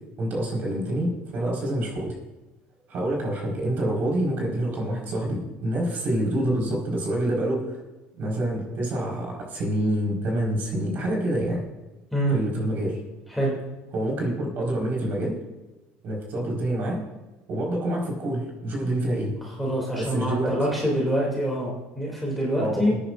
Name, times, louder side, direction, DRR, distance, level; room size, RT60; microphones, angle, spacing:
voice 1, 0.2-2.1 2.9-7.8 8.2-11.6 12.3-13.0 13.9-15.3 16.0-17.0 17.5-19.3 20.0-20.6 22.6-23.0, right 1 dB, 45° right, -1 dB, 4.5 m, -27 dB
voice 2, 12.1-12.4 13.3-13.5 19.6-22.9, equal, ahead, -4 dB, 2.6 m, -25 dB
23.5 x 10.0 x 2.5 m, 1.1 s
cardioid pair, 145°, 4 cm